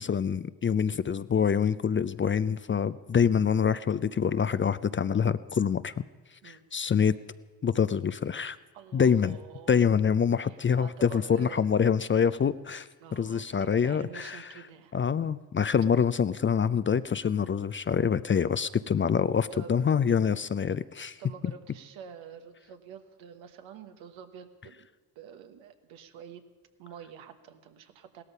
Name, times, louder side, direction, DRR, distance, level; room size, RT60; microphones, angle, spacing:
voice 1, 0.0-5.9 6.4-7.1 7.6-8.6 8.9-9.4 9.7-14.4 14.9-21.2, left 7 dB, 25° left, 15 dB, 0.5 m, -26 dB
voice 2, 8.7-9.8 10.4-11.8 13.0-14.9 19.5-19.7 21.2-24.9 25.1-26.4 26.8-28.2, right 7 dB, 80° right, 7 dB, 1.4 m, -47 dB
17.0 x 13.5 x 5.5 m, 1.3 s
supercardioid pair, 60°, 45 cm